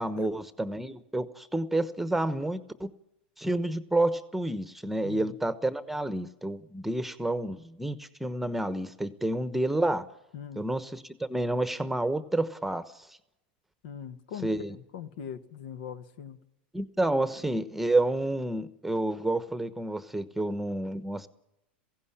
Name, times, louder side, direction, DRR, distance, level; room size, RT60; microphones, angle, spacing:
voice 1, 0.0-2.9 3.4-10.0 10.6-13.2 14.4-14.7 16.7-21.3, right 1 dB, 5° right, 13 dB, 1.1 m, -29 dB
voice 2, 5.0-5.4 10.3-10.6 13.8-16.4, left 8 dB, 70° left, 12 dB, 1.4 m, -41 dB
17.0 x 16.0 x 10.0 m, 0.87 s
hypercardioid pair, 105°, 5 cm